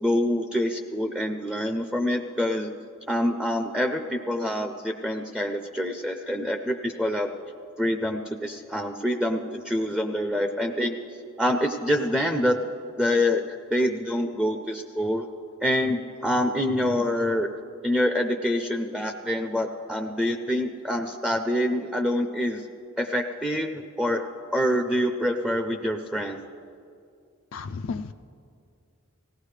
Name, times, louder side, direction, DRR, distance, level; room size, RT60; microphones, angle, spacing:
voice 1, 0.0-2.7 3.1-7.3 7.8-11.0 11.4-12.6 13.0-15.3 15.6-17.5 17.8-22.6 23.0-24.2 24.5-26.4, left 1 dB, 5° right, 4 dB, 0.5 m, -26 dB
voice 2, 27.5-28.1, left 4 dB, 65° left, 8 dB, 0.4 m, -33 dB
18.0 x 17.0 x 3.3 m, 2.3 s
head